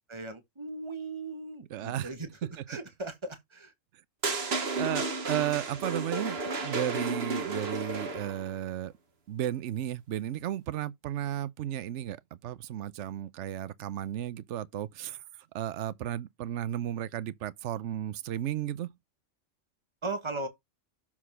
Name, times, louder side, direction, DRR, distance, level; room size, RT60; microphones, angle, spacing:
voice 1, 0.1-3.7 20.0-20.5, right 2 dB, 20° right, 1.7 m, -38 dB
voice 2, 1.7-2.1 4.8-8.9 9.3-15.2 15.5-18.9, right 11 dB, 70° right, 1.0 m, -34 dB
sound 1, 4.2-8.5, right 3 dB, 55° right, 1.6 m, -32 dB
7.3 x 4.2 x 5.6 m
omnidirectional pair, 1.3 m